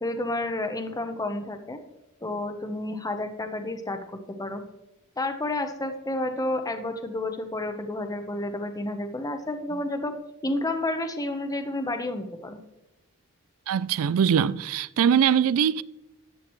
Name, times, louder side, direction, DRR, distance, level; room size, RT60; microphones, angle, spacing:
voice 1, 0.0-1.8 2.2-4.6 5.2-10.1 10.4-12.6, left 2 dB, 15° left, 0.9 m, -30 dB
voice 2, 13.7-15.8, right 8 dB, 65° right, 0.3 m, -22 dB
13.5 x 9.3 x 3.1 m
head